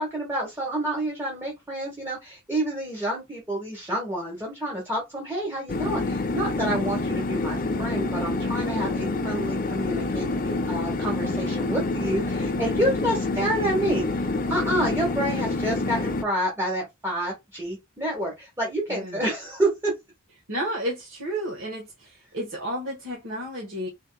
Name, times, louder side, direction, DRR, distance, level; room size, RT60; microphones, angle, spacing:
voice 1, 0.0-19.9, right 1 dB, 15° right, 1.2 m, -28 dB
sound 1, 5.7-16.2, left 2 dB, 40° left, 0.6 m, -27 dB
voice 2, 18.9-19.2 20.5-23.9, right 1 dB, 75° right, 1.4 m, -32 dB
4.3 x 3.5 x 2.3 m
head